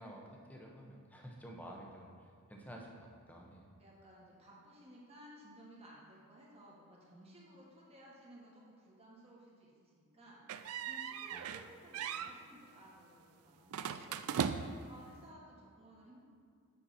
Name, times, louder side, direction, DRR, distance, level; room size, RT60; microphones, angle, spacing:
voice 1, 0.0-3.8 11.3-11.5, equal, 5° left, -1 dB, 0.9 m, -51 dB
voice 2, 3.8-16.2, right 1 dB, 30° right, -5 dB, 1.6 m, -58 dB
sound 1, 10.5-11.7 11.9-12.3 13.7-14.9, right 7 dB, 80° right, 0.4 m, -38 dB
8.3 x 5.8 x 4.2 m, 2.3 s
head